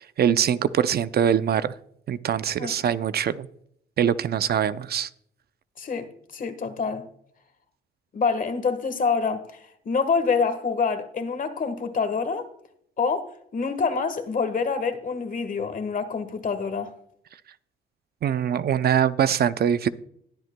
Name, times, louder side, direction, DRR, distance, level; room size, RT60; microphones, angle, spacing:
voice 1, 0.0-1.7 2.1-3.5 4.0-5.1 18.2-19.9, right 9 dB, 50° right, 0.5 m, -23 dB
voice 2, 5.8-7.0 8.1-9.4 9.8-12.5 13.0-16.9, left 5 dB, 45° left, 1.4 m, -26 dB
20.5 x 7.8 x 2.2 m
cardioid pair, 90°, 20 cm